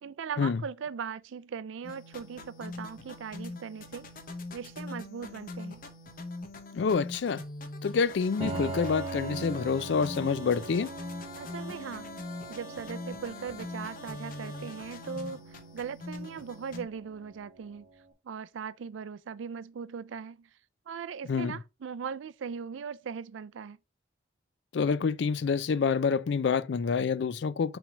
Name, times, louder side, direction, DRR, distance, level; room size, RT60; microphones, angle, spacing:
voice 1, 0.0-4.1 4.5-5.8 11.4-12.1 12.5-17.9 18.2-20.5 20.9-23.8, right 6 dB, 80° right, 0.4 m, -39 dB
sound 1, 1.8-16.8, left 2 dB, 45° left, 0.9 m, -42 dB
voice 2, 6.7-7.4 7.8-10.9 21.3-21.6 24.7-27.8, left 5 dB, 65° left, 0.4 m, -27 dB
Piano, 8.4-18.0, right 3 dB, 30° right, 1.4 m, -42 dB
5.9 x 3.4 x 5.0 m
head